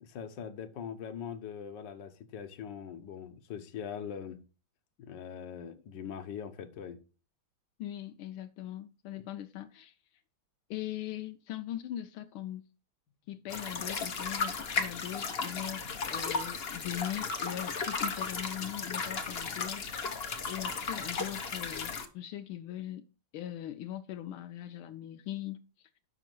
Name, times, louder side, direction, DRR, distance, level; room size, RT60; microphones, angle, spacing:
voice 1, 0.0-4.4 5.0-7.0, left 8 dB, 60° left, 1.6 m, -42 dB
voice 2, 7.8-9.9 10.7-12.6 13.3-23.0 23.3-26.1, left 12 dB, 85° left, 1.5 m, -40 dB
sound 1, 13.5-22.1, left 4 dB, 45° left, 0.8 m, -35 dB
7.3 x 6.0 x 6.0 m
omnidirectional pair, 2.3 m